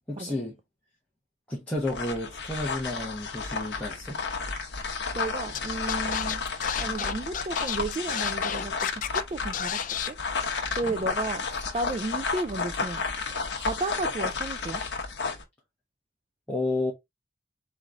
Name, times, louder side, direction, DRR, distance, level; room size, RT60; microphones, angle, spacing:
voice 1, 0.1-0.6 1.5-4.2 10.8-10.9 16.5-16.9, left 2 dB, 10° left, 1.1 m, -31 dB
sound 1, 1.8-15.4, left 4 dB, 70° left, 1.0 m, -32 dB
voice 2, 5.1-6.5 6.8-10.2 10.8-13.0 13.6-14.8, right 2 dB, 30° right, 0.3 m, -33 dB
Scratching (performance technique), 5.5-5.6 5.9-9.2 9.5-10.1, left 9 dB, 45° left, 0.4 m, -32 dB
3.8 x 3.1 x 3.8 m
head